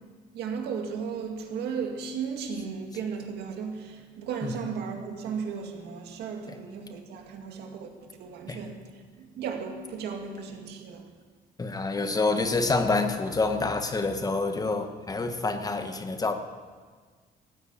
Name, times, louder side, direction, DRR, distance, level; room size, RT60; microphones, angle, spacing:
voice 1, 0.3-7.9 8.2-11.1, right 6 dB, 75° right, 2.1 m, -35 dB
voice 2, 11.6-16.3, left 3 dB, 20° left, 1.3 m, -27 dB
14.5 x 9.0 x 8.8 m
cardioid pair, 110°, 17 cm